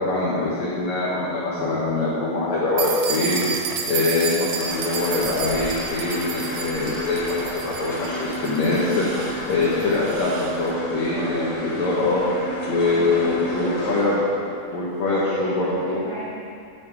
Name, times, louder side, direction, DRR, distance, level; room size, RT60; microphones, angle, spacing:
voice 1, 0.0-3.4 3.9-12.2 12.7-14.3 14.7-16.0, left 3 dB, 80° left, -7 dB, 1.6 m, -23 dB
sound 1, 1.6-1.8 3.1-3.9 4.6-4.7 5.0-5.5 7.1-7.9 8.9-9.4 10.9-11.6 12.8-13.4, right 2 dB, 60° right, 2.9 m, -40 dB
sound 2, 2.8-10.6, right 7 dB, 90° right, 2.1 m, -31 dB
sound 3, 4.6-14.1, right 1 dB, 45° left, 2.1 m, -32 dB
voice 2, 11.1-14.1 15.0-16.5, equal, 45° right, -9 dB, 1.6 m, -34 dB
10.5 x 7.9 x 4.8 m, 2.4 s
omnidirectional pair, 5.3 m